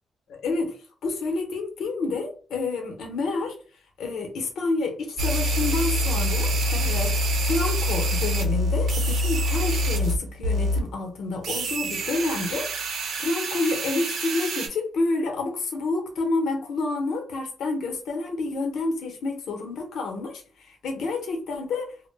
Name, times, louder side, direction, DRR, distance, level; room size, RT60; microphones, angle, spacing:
voice 1, 0.3-3.6 4.0-22.1, left 3 dB, 85° left, 0.7 m, -29 dB
sound 1, 5.2-10.2 10.4-10.8 11.4-14.7, equal, 85° right, 0.6 m, -25 dB
2.1 x 2.1 x 3.2 m
wide cardioid pair, 165°, 0 cm